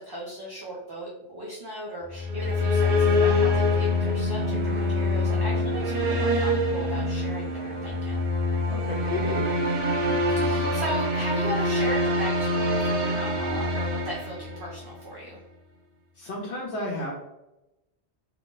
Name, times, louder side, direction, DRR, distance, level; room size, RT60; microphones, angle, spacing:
voice 1, 0.0-8.3 10.3-15.4, equal, 30° right, -5 dB, 0.5 m, -37 dB
sound 1, 2.1-14.9, left 2 dB, 60° right, 0.8 m, -25 dB
voice 2, 8.7-9.4 16.1-17.1, left 1 dB, 85° left, -3 dB, 1.0 m, -32 dB
2.5 x 2.4 x 3.7 m, 0.93 s
omnidirectional pair, 1.1 m